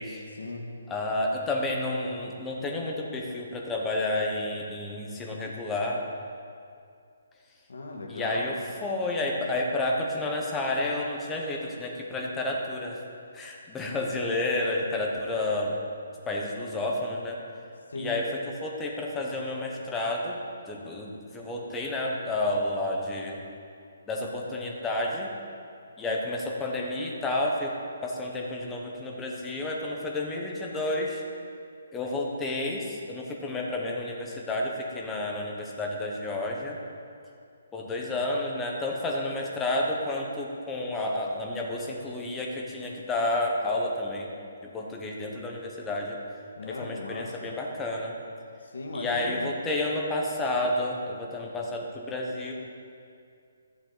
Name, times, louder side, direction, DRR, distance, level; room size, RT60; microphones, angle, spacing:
voice 1, 0.3-0.7 7.7-8.4 17.9-18.2 46.6-47.5 48.7-49.5, left 2 dB, 85° left, 0 dB, 1.6 m, -37 dB
voice 2, 0.9-6.0 8.1-13.0 13.3-15.8 16.3-17.4 18.0-20.4 20.7-23.4 24.1-25.3 26.0-27.7 28.0-31.2 31.9-36.8 37.7-44.3 44.6-46.2 46.6-48.2 48.9-52.5, left 2 dB, 5° left, -1 dB, 0.8 m, -30 dB
13.5 x 7.2 x 3.9 m, 2.4 s
hypercardioid pair, 175°, 0 cm